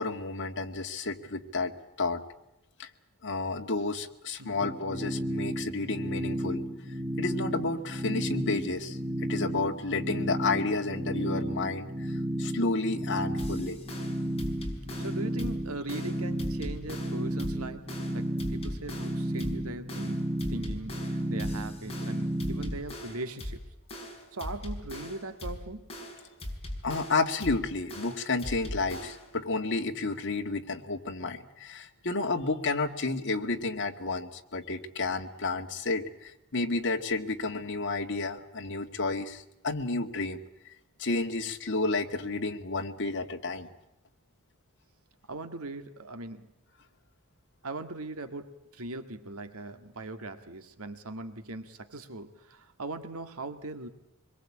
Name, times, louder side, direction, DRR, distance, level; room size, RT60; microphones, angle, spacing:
voice 1, 0.0-2.2 2.8-2.9 3.2-6.6 7.2-13.8 26.8-40.4 41.0-43.7, left 3 dB, 60° left, 4 dB, 2.2 m, -31 dB
sound 1, 4.6-22.8, right 1 dB, 20° right, 1.0 m, -33 dB
sound 2, 13.4-29.4, left 1 dB, 30° left, 5.7 m, -40 dB
voice 2, 15.0-17.9 18.1-23.6 24.3-25.9 45.3-46.5 47.6-53.9, right 2 dB, 80° right, 8 dB, 1.9 m, -40 dB
25.0 x 22.0 x 8.6 m, 0.87 s
head